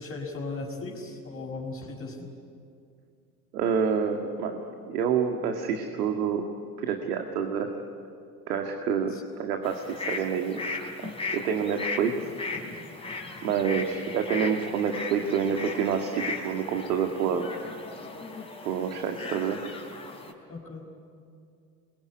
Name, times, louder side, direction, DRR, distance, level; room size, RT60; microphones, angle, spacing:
voice 1, 0.0-2.3 9.1-9.2 20.5-20.8, left 3 dB, 30° left, -2 dB, 5.2 m, -37 dB
voice 2, 3.5-6.4 6.8-7.7 8.5-10.6 11.0-12.1 13.4-17.5 18.6-19.6, right 7 dB, 75° right, 3 dB, 2.2 m, -28 dB
sound 1, 9.6-20.3, left 3 dB, 10° left, 3.9 m, -37 dB
27.0 x 22.5 x 9.9 m, 2.4 s
hypercardioid pair, 90°, 47 cm